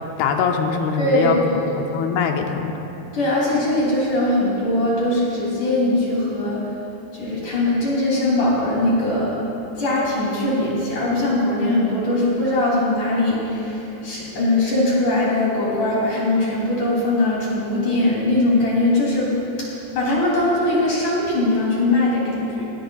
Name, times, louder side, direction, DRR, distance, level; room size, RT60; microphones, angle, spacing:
voice 1, 0.2-1.4 1.9-2.7, left 6 dB, 75° left, 3 dB, 2.5 m, -22 dB
voice 2, 1.0-1.8 3.1-6.7 7.1-9.4 9.7-22.6, left 1 dB, 45° left, -7 dB, 4.1 m, -21 dB
20.5 x 17.0 x 2.3 m, 3.0 s
omnidirectional pair, 5.1 m